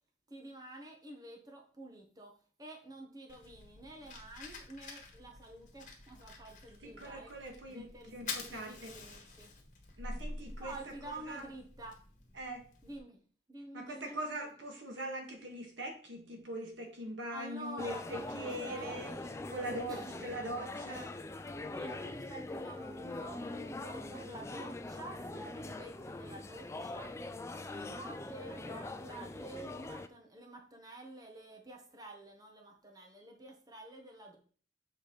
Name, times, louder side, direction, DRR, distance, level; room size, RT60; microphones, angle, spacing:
voice 1, 0.3-7.3 7.7-8.1 8.5-9.5 10.6-12.0 12.8-13.2 13.5-14.2 17.2-19.4 19.9-20.2 21.7-27.1 27.7-34.4, right 1 dB, 20° right, 2 dB, 1.0 m, -49 dB
Fire, 3.3-13.0, left 3 dB, 40° left, 1.5 m, -48 dB
voice 2, 6.8-8.9 10.0-10.7 11.0-11.4 12.3-12.6 13.7-19.1 19.5-21.1, right 1 dB, 85° right, 2 dB, 1.7 m, -42 dB
sound 1, 17.8-30.1, left 2 dB, 15° left, 0.3 m, -43 dB
6.9 x 4.8 x 3.9 m, 0.44 s
head